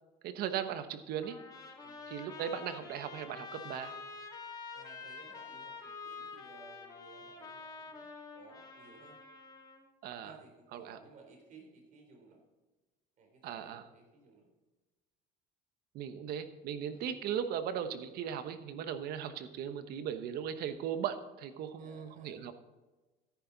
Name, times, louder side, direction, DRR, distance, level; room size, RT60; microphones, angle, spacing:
voice 1, 0.2-1.4 2.1-4.0 10.0-10.3 10.7-11.0 13.4-13.8 15.9-22.5, right 8 dB, 65° right, 10 dB, 1.2 m, -38 dB
Trumpet, 1.2-9.9, left 4 dB, 20° left, 2.5 m, -47 dB
voice 2, 4.7-8.1 8.3-9.2 10.2-12.4 13.2-14.5 16.9-17.1 21.8-22.4, right 3 dB, 45° right, 3 dB, 3.7 m, -58 dB
13.5 x 11.0 x 4.0 m, 1.2 s
cardioid pair, 125°, 17 cm